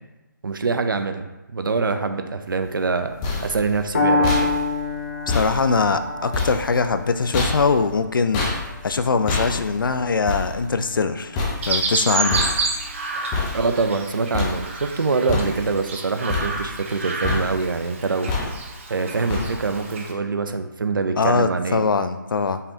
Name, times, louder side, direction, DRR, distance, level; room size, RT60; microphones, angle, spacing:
voice 1, 0.4-1.3 1.5-3.1 3.4-4.6 13.5-18.5 18.9-21.8, right 4 dB, 80° right, 7 dB, 0.6 m, -24 dB
sound 1, 2.8-14.1 14.3-14.9 15.3-15.9 16.3-17.0 17.2-17.8 18.3-18.8 19.3-19.8, left 3 dB, 15° left, 0.6 m, -29 dB
Piano, 3.9-11.9, left 3 dB, 40° left, 0.8 m, -28 dB
voice 2, 5.3-8.4 8.8-11.4 11.7-12.4 13.1-13.3 21.2-22.6, left 4 dB, 80° left, 10 dB, 0.4 m, -22 dB
Chirp tweet, 11.6-20.1, right 3 dB, 40° right, 0.7 m, -29 dB
5.4 x 3.4 x 2.7 m, 1.1 s
figure-of-eight pair, 160°, 11 cm